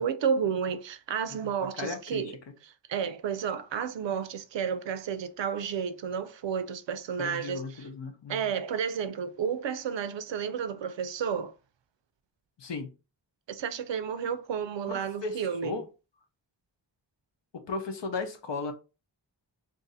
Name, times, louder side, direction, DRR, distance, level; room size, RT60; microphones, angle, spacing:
voice 1, 0.0-2.4 2.9-7.8 8.3-11.5 13.5-15.8, right 7 dB, 75° right, 0.5 m, -31 dB
voice 2, 1.8-2.4 7.2-8.5 12.6-12.9 14.9-15.9 17.5-18.7, left 4 dB, 75° left, 0.8 m, -36 dB
2.6 x 2.5 x 4.0 m
wide cardioid pair, 85°, 44 cm